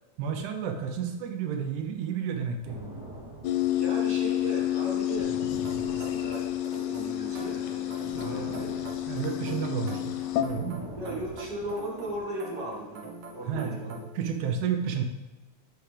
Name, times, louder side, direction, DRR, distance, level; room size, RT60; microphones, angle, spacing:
voice 1, 0.2-2.8 9.1-10.8 13.5-15.0, right 7 dB, 85° right, 5 dB, 2.2 m, -31 dB
sound 1, 2.6-7.0 7.3-12.2, right 2 dB, 15° right, 0.9 m, -43 dB
sound 2, 3.4-10.4, left 13 dB, 75° left, 1.7 m, -29 dB
voice 2, 3.8-5.3 5.6-6.5 6.8-8.8 9.4-9.7 11.0-14.0, right 1 dB, 40° right, -4 dB, 2.0 m, -37 dB
sound 3, 5.5-14.2, right 3 dB, 65° right, 2.0 m, -44 dB
12.5 x 4.8 x 3.3 m, 1.1 s
omnidirectional pair, 3.4 m